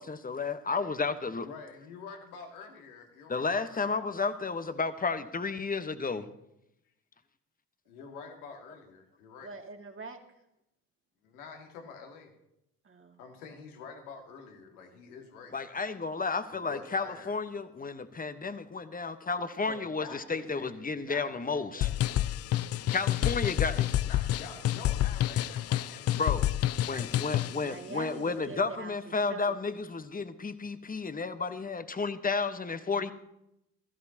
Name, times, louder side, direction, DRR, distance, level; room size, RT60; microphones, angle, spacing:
voice 1, 0.0-1.5 3.3-6.3 15.5-21.9 22.9-24.0 26.2-26.5 26.8-33.1, left 4 dB, 20° left, 11 dB, 1.2 m, -32 dB
voice 2, 1.4-4.0 4.4-4.5 7.9-9.5 11.2-12.3 13.2-15.6 16.5-17.3 18.0-18.1 19.7-22.8 24.0-27.0, left 5 dB, 75° left, 3 dB, 2.1 m, -48 dB
voice 3, 9.4-10.2 12.8-13.2 27.6-29.6, right 4 dB, 30° right, 4 dB, 2.2 m, -44 dB
sound 1, 21.8-27.6, left 13 dB, 35° left, 0.5 m, -29 dB
18.5 x 15.0 x 2.9 m, 0.83 s
figure-of-eight pair, 50°, 44 cm